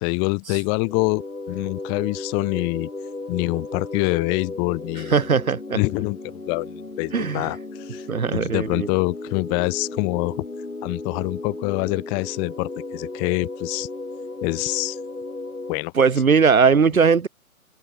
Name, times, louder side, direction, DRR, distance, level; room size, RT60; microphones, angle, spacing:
voice 1, 0.0-2.9 3.3-5.1 5.7-6.2 6.5-8.1 8.3-10.4 10.8-13.9 14.4-15.0 15.7-15.9, left 39 dB, 10° left, 0.9 m, -25 dB
sound 1, 0.8-15.7, left 2 dB, 90° left, 2.3 m, -35 dB
voice 2, 5.1-5.8 7.1-7.5 8.1-8.9 15.9-17.3, right 5 dB, 70° right, 1.3 m, -19 dB
open air
figure-of-eight pair, 135°, 43 cm